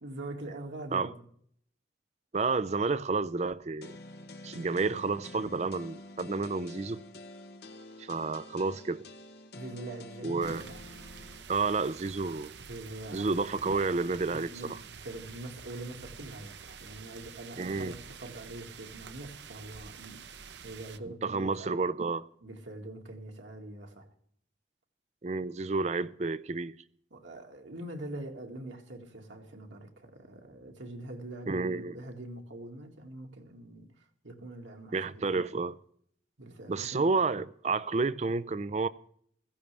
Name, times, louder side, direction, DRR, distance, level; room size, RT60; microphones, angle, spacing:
voice 1, 0.0-1.2 9.5-10.8 12.7-13.4 14.3-21.7 22.4-24.1 27.1-35.3 36.4-37.1, right 1 dB, 90° right, 2.0 m, -44 dB
voice 2, 2.3-3.9 4.4-7.0 8.0-9.1 10.2-10.6 11.5-12.6 13.1-14.5 17.6-17.9 21.2-22.3 25.2-26.7 31.5-31.9 34.9-35.8 36.7-38.9, right 4 dB, 35° right, 0.4 m, -30 dB
sound 1, 3.8-11.4, left 2 dB, 60° left, 0.9 m, -48 dB
sound 2, 10.4-21.0, right 6 dB, 75° right, 0.7 m, -48 dB
15.5 x 15.0 x 3.3 m
head